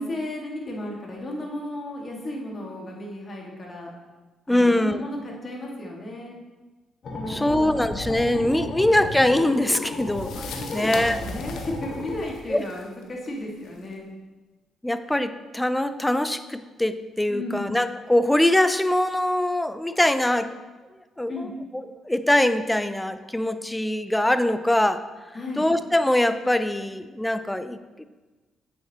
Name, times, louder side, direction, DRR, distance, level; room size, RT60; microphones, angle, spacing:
voice 1, 0.0-3.9 4.5-6.3 7.1-7.8 8.2-8.8 10.5-14.1 17.3-17.6 21.3-21.5 25.3-25.7, left 1 dB, 35° left, -2 dB, 2.0 m, -34 dB
voice 2, 4.5-5.0 7.3-10.5 10.7-11.2 12.5-12.6 14.8-20.5 21.2-21.3 22.0-25.0 25.6-28.0, left 1 dB, 10° left, 12 dB, 0.4 m, -22 dB
sound 1, 7.0-12.2, left 2 dB, 55° left, 1.5 m, -34 dB
sound 2, 9.0-13.9, left 5 dB, 80° left, 0.9 m, -42 dB
8.5 x 7.3 x 3.0 m, 1.2 s
cardioid pair, 90°, 0 cm